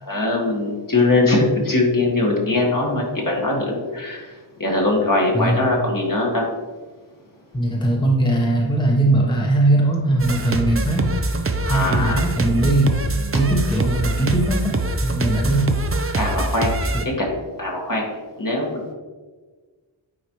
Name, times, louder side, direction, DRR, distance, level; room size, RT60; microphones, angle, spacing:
voice 1, 0.0-4.3 4.6-6.5 11.6-12.2 16.1-16.9 17.2-17.3 17.6-18.0 18.4-18.8, left 2 dB, 40° left, -2 dB, 1.8 m, -21 dB
voice 2, 7.5-11.1 11.7-12.9 13.3-15.7 16.9-17.1, right 1 dB, 10° left, -2 dB, 1.1 m, -20 dB
sound 1, 10.2-17.1, right 2 dB, 30° right, 0.6 m, -24 dB
9.5 x 4.1 x 3.1 m, 1.4 s
wide cardioid pair, 50°, 48 cm